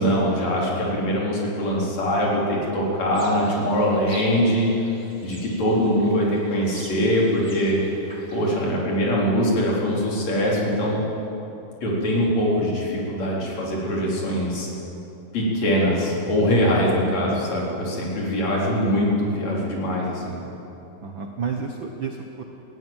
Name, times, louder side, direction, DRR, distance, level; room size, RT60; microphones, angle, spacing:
voice 1, 0.0-4.7 5.2-7.8 8.3-11.0 11.8-14.7 15.3-20.4, equal, 50° left, -4 dB, 5.0 m, -22 dB
sound 1, 3.1-8.7, right 2 dB, 20° right, 3.1 m, -44 dB
voice 2, 17.1-17.4 21.0-22.4, right 5 dB, 90° right, 3 dB, 1.0 m, -31 dB
19.0 x 15.5 x 9.2 m, 2.9 s
omnidirectional pair, 4.1 m